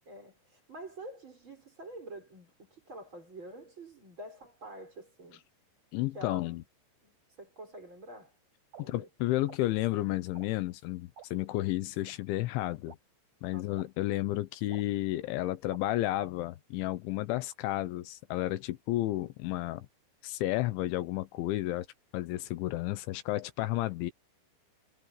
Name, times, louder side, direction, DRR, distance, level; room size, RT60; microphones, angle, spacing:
voice 1, 0.1-5.5 6.1-6.6 7.0-8.3 8.8-9.1 13.5-13.9, right 1 dB, 25° right, 6.7 m, -47 dB
voice 2, 5.9-6.6 8.9-13.0 13.4-19.9 20.2-21.9 22.1-24.1, left 16 dB, 80° left, 3.3 m, -32 dB
sound 1, 8.7-8.8 9.5-9.6 10.3-10.5 11.2-11.3 12.1-12.2 12.9-13.0 13.8-13.9 14.7-14.8 15.7-15.8, right 7 dB, 40° right, 8.8 m, -49 dB
omnidirectional pair, 5.5 m